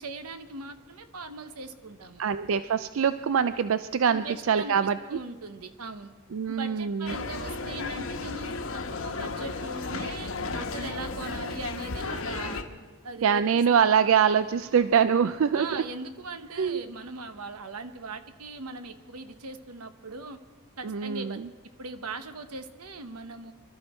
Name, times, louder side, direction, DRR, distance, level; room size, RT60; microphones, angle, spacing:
voice 1, 0.0-2.2 4.1-6.2 6.5-8.6 9.0-12.6 13.0-13.9 15.5-20.4 20.8-21.4 21.8-23.5, right 3 dB, 90° right, 9 dB, 1.1 m, -40 dB
voice 2, 2.2-5.0 6.3-7.2 13.2-15.8 16.6-16.8 20.8-21.5, right 7 dB, 65° right, 13 dB, 0.4 m, -24 dB
sound 1, 7.1-12.6, left 3 dB, 65° left, 1.1 m, -34 dB
24.5 x 13.0 x 4.4 m, 1.4 s
head